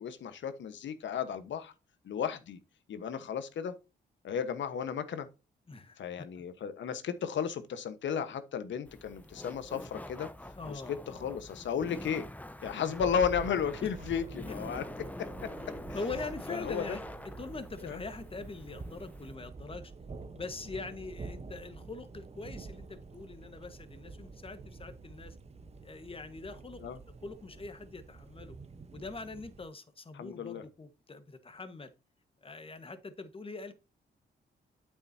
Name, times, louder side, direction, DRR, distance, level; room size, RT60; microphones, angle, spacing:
voice 1, 0.0-1.7 2.0-2.6 2.9-3.7 4.2-5.3 6.0-10.3 10.7-12.2 12.6-14.8 16.5-17.0 17.8-18.0 26.8-27.0 30.1-30.6, left 7 dB, 75° left, 1.2 m, -34 dB
voice 2, 5.7-6.3 10.6-10.9 12.9-13.0 13.8-13.9 15.6-19.9 20.3-25.4 25.8-26.8 27.2-28.6 28.9-31.9 32.4-33.7, left 3 dB, 30° left, 1.4 m, -43 dB
Laughter, 8.8-19.4, left 1 dB, 10° left, 0.9 m, -46 dB
Thunder, 13.0-29.7, right 4 dB, 35° right, 1.0 m, -47 dB
8.9 x 7.0 x 2.8 m
cardioid pair, 80°, 19 cm